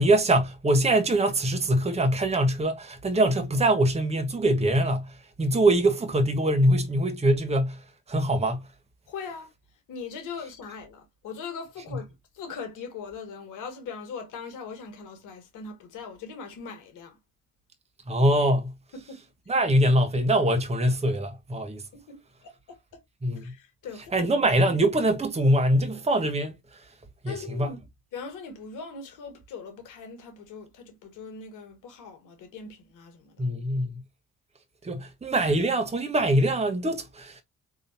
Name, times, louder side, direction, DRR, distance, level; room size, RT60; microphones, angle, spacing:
voice 1, 0.0-8.7 18.1-18.7 19.5-21.8 23.2-23.5 24.1-26.9 27.2-27.7 33.4-34.0 34.8-37.4, right 1 dB, 20° right, 1.1 m, -23 dB
voice 2, 9.1-9.5 9.9-12.1 12.3-17.2 18.9-19.3 21.9-23.0 23.4-24.3 27.3-27.8 28.1-33.5, left 5 dB, 70° left, 1.5 m, -40 dB
4.0 x 2.9 x 2.7 m
hypercardioid pair, 50°, 33 cm